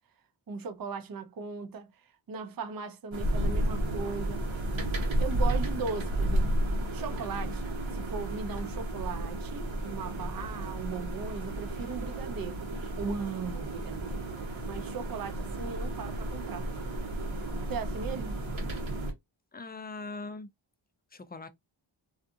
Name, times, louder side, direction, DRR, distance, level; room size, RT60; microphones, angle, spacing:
voice 1, 0.5-1.9 2.3-4.4 5.2-6.5 6.9-12.7 13.0-14.3 14.6-16.7 17.7-18.3, right 5 dB, 45° right, 0.6 m, -38 dB
sound 1, 3.1-19.1, right 1 dB, 65° right, 0.9 m, -32 dB
voice 2, 19.5-20.5 21.1-21.5, left 3 dB, 20° left, 0.4 m, -41 dB
2.5 x 2.4 x 2.6 m
cardioid pair, 50°, 50 cm